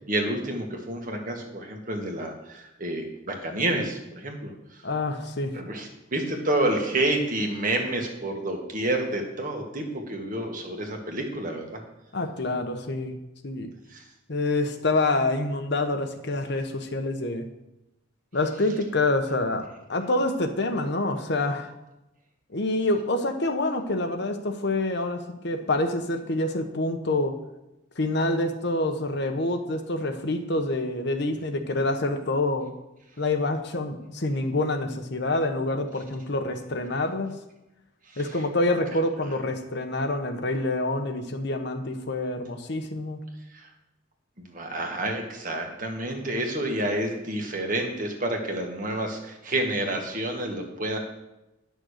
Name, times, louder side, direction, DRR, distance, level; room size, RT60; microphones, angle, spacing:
voice 1, 0.1-4.8 5.5-11.8 13.9-14.0 38.1-38.4 43.5-43.7 44.4-51.0, right 1 dB, 45° right, 2 dB, 1.7 m, -29 dB
voice 2, 4.8-5.6 12.1-13.1 13.4-13.7 14.3-17.4 18.3-21.7 22.5-27.4 28.0-32.7 33.2-37.3 38.2-43.2, left 2 dB, 60° left, 6 dB, 1.1 m, -27 dB
10.5 x 6.5 x 6.6 m, 0.94 s
head